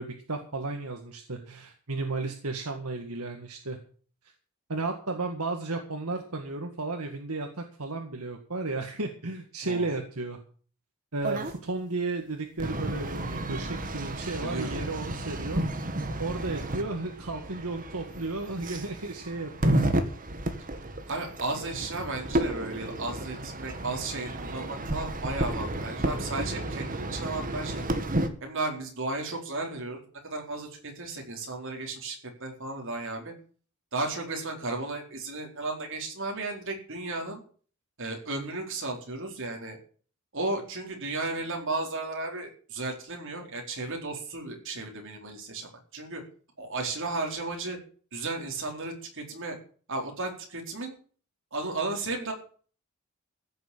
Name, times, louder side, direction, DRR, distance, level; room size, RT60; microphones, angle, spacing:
voice 1, 0.0-3.8 4.7-10.4 11.1-15.7 16.2-20.1, right 3 dB, 85° right, 4 dB, 1.9 m, -34 dB
voice 2, 9.6-10.0 14.4-15.0 21.1-27.8 28.4-33.3 33.9-37.4 38.0-39.8 40.3-46.2 46.6-47.8 48.1-49.6 49.9-50.9 51.5-52.3, right 2 dB, 60° right, 1 dB, 4.3 m, -34 dB
sound 1, 11.2-11.6 12.6-28.3, right 1 dB, 40° right, 1.6 m, -32 dB
15.5 x 7.2 x 8.7 m, 0.44 s
head